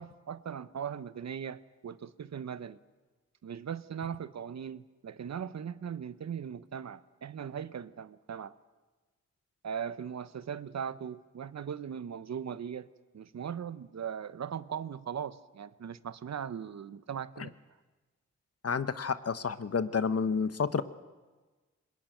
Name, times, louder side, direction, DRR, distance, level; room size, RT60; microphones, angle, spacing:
voice 1, 0.0-2.8 3.4-8.5 9.6-12.9 13.1-17.5, right 8 dB, 60° right, 0.9 m, -39 dB
voice 2, 18.6-20.8, left 5 dB, 50° left, 1.2 m, -30 dB
21.0 x 20.5 x 9.1 m
cardioid pair, 45°, 30 cm